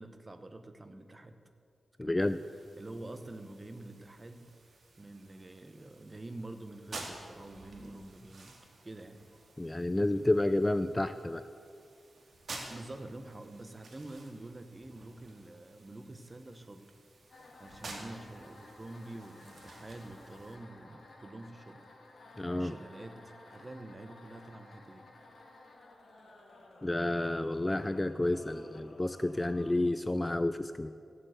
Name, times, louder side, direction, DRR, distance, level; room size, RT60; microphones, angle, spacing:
voice 1, 0.0-1.4 2.0-2.4 2.8-4.5 5.0-9.2 12.6-16.9 17.6-21.8 22.6-25.1, right 2 dB, 25° right, 8 dB, 1.0 m, -47 dB
voice 2, 2.0-2.4 9.6-11.4 22.4-22.7 26.8-30.9, left 1 dB, 15° left, 11 dB, 0.4 m, -30 dB
sound 1, 2.2-20.6, right 2 dB, 60° right, 2.3 m, -51 dB
sound 2, 17.3-29.7, left 2 dB, 65° left, 2.0 m, -55 dB
15.0 x 7.8 x 8.1 m, 2.4 s
wide cardioid pair, 115°, 0 cm